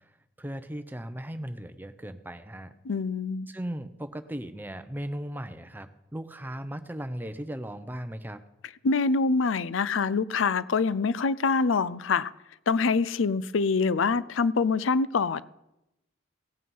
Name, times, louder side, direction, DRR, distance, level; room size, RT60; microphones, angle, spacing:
voice 1, 0.4-2.7 3.5-8.4, right 1 dB, 10° right, 10 dB, 0.7 m, -37 dB
voice 2, 2.8-3.5 8.8-12.3 12.7-15.4, left 4 dB, 90° left, 18 dB, 0.5 m, -25 dB
17.5 x 8.5 x 5.5 m, 0.91 s
head